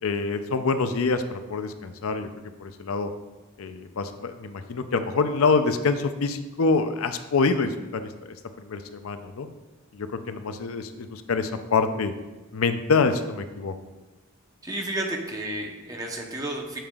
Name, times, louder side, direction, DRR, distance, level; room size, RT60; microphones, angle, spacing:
voice 1, 0.0-2.3 2.6-3.1 3.6-8.1 8.6-9.5 9.9-12.1 12.5-13.7, left 4 dB, 85° left, 9 dB, 0.5 m, -26 dB
voice 2, 14.6-16.8, right 1 dB, 15° right, 1 dB, 0.9 m, -31 dB
8.9 x 6.8 x 2.4 m, 1.2 s
head